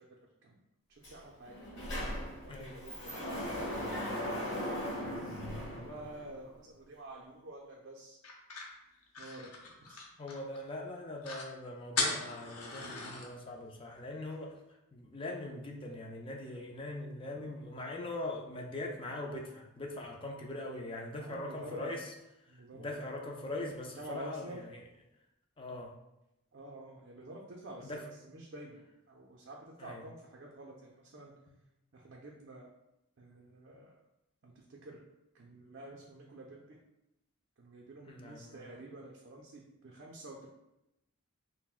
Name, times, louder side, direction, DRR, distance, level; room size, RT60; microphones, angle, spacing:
voice 1, 0.9-1.5 2.4-4.2 5.5-8.2 9.2-9.5 9.8-10.0 21.1-22.0 22.5-23.2 24.0-24.6 26.5-28.8 29.1-31.3 31.9-32.7 33.2-33.9 34.4-35.0 35.3-36.8 37.6-40.5, right 1 dB, 50° right, -2 dB, 0.4 m, -49 dB
Sliding door, 1.0-1.1 1.5-6.5, equal, 55° left, 1.3 m, -38 dB
sound 1, 8.2-10.6 10.9-11.0 11.2-11.5 12.0-13.3, left 3 dB, 80° left, 0.7 m, -37 dB
voice 2, 10.2-14.5 14.9-22.1 22.7-24.8 25.6-25.9 27.9-28.0 29.8-30.0 38.1-38.7, left 2 dB, 25° left, 1 dB, 0.4 m, -41 dB
5.6 x 2.1 x 2.4 m, 0.89 s
head